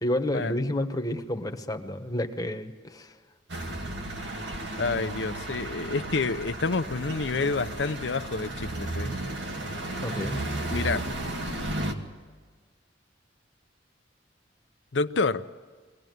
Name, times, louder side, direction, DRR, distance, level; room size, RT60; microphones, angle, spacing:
voice 1, 0.0-3.2 10.0-10.4, left 1 dB, 20° left, 7 dB, 1.1 m, -30 dB
sound 1, 3.5-11.9, right 1 dB, 85° right, 2.0 m, -34 dB
voice 2, 4.8-9.1 10.7-11.1 14.9-15.4, left 3 dB, 80° left, 10 dB, 0.7 m, -28 dB
23.0 x 17.5 x 9.4 m, 1.5 s
head